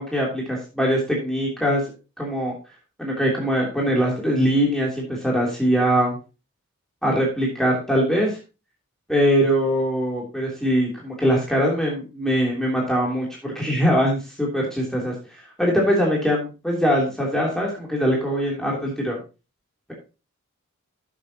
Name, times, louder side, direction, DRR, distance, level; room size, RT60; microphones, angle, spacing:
voice 1, 0.0-1.8 2.2-2.5 3.0-6.2 7.0-8.4 9.1-19.2, equal, ahead, -3 dB, 3.1 m, -22 dB
11.5 x 7.5 x 2.9 m, 0.31 s
wide cardioid pair, 65°, 32 cm